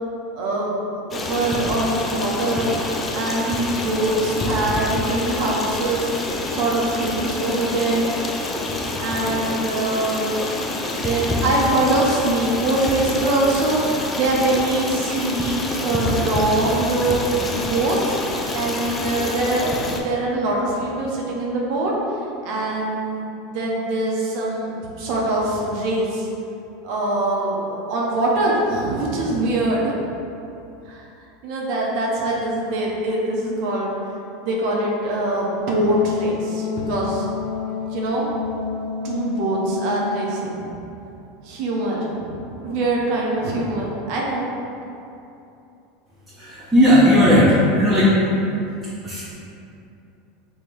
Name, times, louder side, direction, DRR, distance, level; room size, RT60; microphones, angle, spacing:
voice 1, 0.3-2.7 3.1-6.1 6.5-8.1 9.0-10.4 10.9-17.2 17.6-18.2 18.5-21.9 22.4-26.3 26.8-29.9 30.9-31.0 31.4-33.9 34.4-37.2 37.9-38.3 39.0-40.8 41.4-44.5, right 2 dB, 55° right, -3 dB, 0.6 m, -23 dB
Stream, 1.1-20.0, left 2 dB, 25° left, 0.4 m, -27 dB
Wind instrument woodwind instrument, 35.6-40.4, left 6 dB, 60° left, 0.8 m, -29 dB
voice 2, 46.4-48.2 49.0-49.3, equal, 10° right, -11 dB, 0.7 m, -15 dB
3.6 x 2.2 x 3.1 m, 2.8 s
hypercardioid pair, 85°, 0 cm